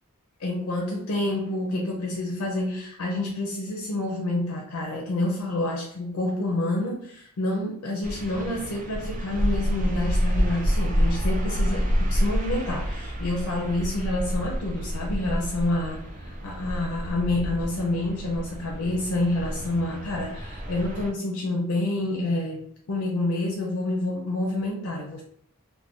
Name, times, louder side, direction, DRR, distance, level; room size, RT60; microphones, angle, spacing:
voice 1, 0.4-25.2, left 2 dB, 80° left, 0 dB, 0.5 m, -28 dB
sound 1, 8.0-21.1, equal, 35° right, 0.5 m, -28 dB
2.4 x 2.2 x 3.6 m, 0.68 s
head